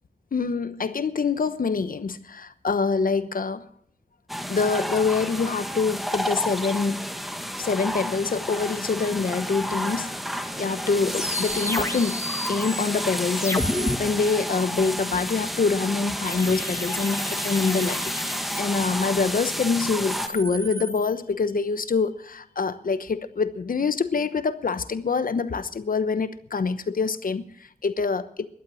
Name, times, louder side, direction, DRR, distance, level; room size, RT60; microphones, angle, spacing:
voice 1, 0.3-3.7 4.5-7.1 7.6-10.1 10.6-12.2 12.5-18.0 18.4-28.5, left 4 dB, 75° left, 1.0 m, -25 dB
sound 1, 4.3-20.3, equal, ahead, 1.6 m, -31 dB
sound 2, 11.1-14.0 16.3-19.1 19.9-21.1, left 1 dB, 20° left, 1.6 m, -32 dB
17.0 x 12.0 x 6.3 m
wide cardioid pair, 95°, 15 cm